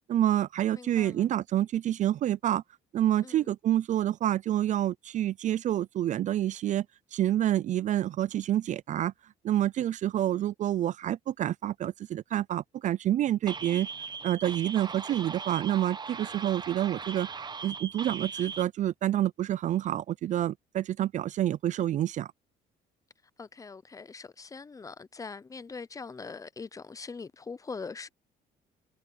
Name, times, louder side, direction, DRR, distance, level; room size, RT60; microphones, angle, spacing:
voice 1, 0.1-2.6 2.9-6.9 7.1-9.1 9.4-13.9 14.2-17.3 17.6-22.3, right 12 dB, 45° right, 0.4 m, -28 dB
voice 2, 0.7-1.3 3.2-3.5 23.4-28.1, left 4 dB, 20° left, 0.7 m, -42 dB
sound 1, 13.5-18.6, right 5 dB, 25° right, 1.0 m, -39 dB
cardioid pair, 110°, 17 cm